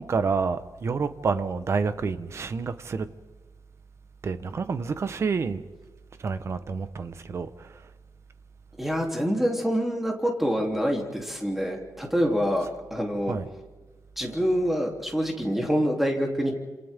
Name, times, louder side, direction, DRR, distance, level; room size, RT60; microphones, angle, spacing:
voice 1, 0.0-3.1 4.2-5.6 6.2-7.8 13.3-13.5, right 5 dB, 40° right, 1.1 m, -28 dB
voice 2, 8.8-13.3 14.2-16.5, equal, 5° right, 3.3 m, -26 dB
30.0 x 27.5 x 3.7 m
wide cardioid pair, 160°, 7 cm